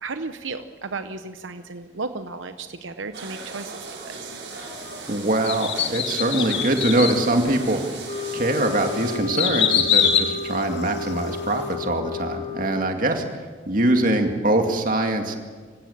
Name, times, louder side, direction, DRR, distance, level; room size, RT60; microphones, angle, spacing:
voice 1, 0.0-4.4, right 3 dB, 85° right, 9 dB, 0.9 m, -34 dB
sound 1, 3.1-9.2, right 4 dB, 65° right, 6.0 m, -37 dB
voice 2, 5.1-7.8 8.3-13.2 13.7-15.4, right 1 dB, 45° right, 4 dB, 2.3 m, -23 dB
sound 2, 5.4-7.2 7.8-7.9 8.5-11.3 11.7-11.8, left 8 dB, 65° left, 2.2 m, -23 dB
sound 3, 8.1-13.0, left 4 dB, 35° left, 2.2 m, -33 dB
26.0 x 16.0 x 7.3 m, 1.5 s
head